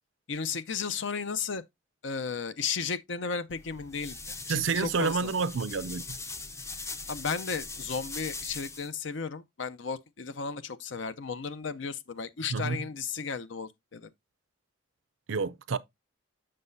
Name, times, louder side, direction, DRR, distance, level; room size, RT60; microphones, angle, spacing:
voice 1, 0.3-1.6 2.0-4.2 4.5-5.3 7.1-14.1, left 5 dB, 70° left, 0.6 m, -34 dB
sound 1, 3.5-8.9, left 3 dB, 15° left, 0.5 m, -41 dB
voice 2, 4.5-6.2 12.5-12.8 15.3-15.8, right 5 dB, 80° right, 0.5 m, -29 dB
7.6 x 6.5 x 2.6 m
head